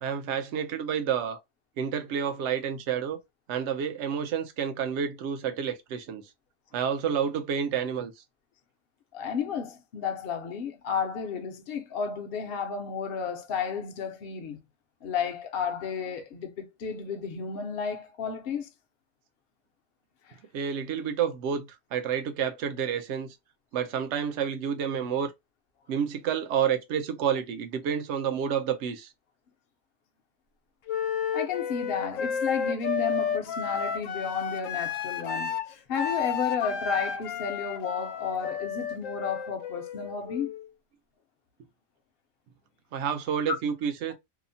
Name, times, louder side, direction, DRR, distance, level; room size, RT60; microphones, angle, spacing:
voice 1, 0.0-1.4 1.8-3.2 3.5-6.2 6.7-8.1 20.5-23.3 23.7-25.3 25.9-29.1 42.9-44.1, right 8 dB, 70° right, 0.9 m, -29 dB
voice 2, 9.1-14.6 15.0-18.7 20.3-20.4 31.3-35.6 35.9-40.5, left 6 dB, 55° left, 0.7 m, -32 dB
Wind instrument woodwind instrument, 30.9-40.7, left 7 dB, 85° left, 1.0 m, -32 dB
2.8 x 2.0 x 2.5 m
omnidirectional pair, 1.3 m